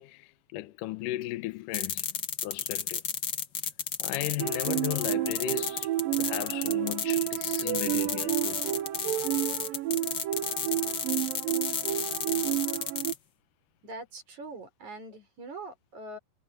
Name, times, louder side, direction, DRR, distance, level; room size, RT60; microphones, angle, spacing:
voice 1, 0.0-3.0 4.0-8.6, left 16 dB, 75° left, 2.3 m, -36 dB
sound 1, 1.7-13.2, left 7 dB, 55° left, 1.3 m, -32 dB
sound 2, 4.4-13.1, right 14 dB, 85° right, 2.6 m, -31 dB
voice 2, 13.8-16.2, right 2 dB, 55° right, 6.8 m, -42 dB
omnidirectional pair, 4.0 m